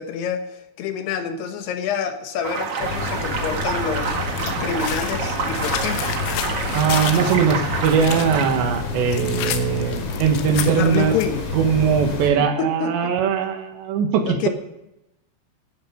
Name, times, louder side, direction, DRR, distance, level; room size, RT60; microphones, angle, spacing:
voice 1, 0.0-6.0 10.7-11.4 12.4-13.1 14.3-14.5, left 7 dB, 70° left, 7 dB, 2.9 m, -27 dB
sound 1, 2.4-8.4, right 5 dB, 50° right, 1.8 m, -28 dB
sound 2, 2.8-12.3, left 3 dB, 45° left, 3.4 m, -29 dB
sound 3, 4.4-11.4, left 10 dB, 90° left, 3.5 m, -32 dB
voice 2, 6.7-11.1 11.5-14.5, right 6 dB, 75° right, 5 dB, 3.7 m, -20 dB
12.5 x 11.5 x 5.1 m, 0.88 s
omnidirectional pair, 5.2 m